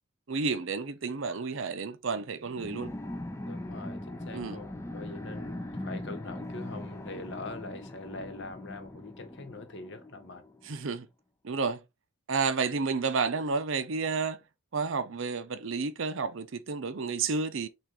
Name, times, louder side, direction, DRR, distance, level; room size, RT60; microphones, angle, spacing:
voice 1, 0.3-2.9 4.3-4.6 10.6-11.1 11.4-11.8 12.3-14.4 14.7-17.7, right 4 dB, 65° right, 0.6 m, -31 dB
sound 1, 2.6-10.7, left 1 dB, 15° left, 0.4 m, -40 dB
voice 2, 3.4-10.4, left 2 dB, 55° left, 1.0 m, -43 dB
6.3 x 2.5 x 3.3 m
head